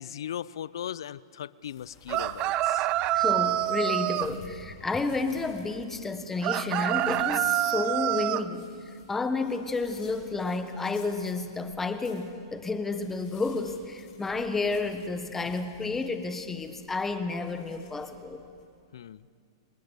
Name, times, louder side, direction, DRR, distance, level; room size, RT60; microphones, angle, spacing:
voice 1, 0.0-2.9 18.9-19.3, left 10 dB, 75° left, 21 dB, 0.5 m, -38 dB
sound 1, 1.6-18.6, left 4 dB, 30° left, 7.0 m, -55 dB
sound 2, 2.1-4.3 6.4-8.4, right 14 dB, 40° right, 0.6 m, -26 dB
voice 2, 3.1-8.6 9.1-18.4, left 3 dB, 10° left, 9 dB, 1.3 m, -31 dB
26.5 x 19.5 x 6.8 m, 2.3 s
hypercardioid pair, 115°, 2 cm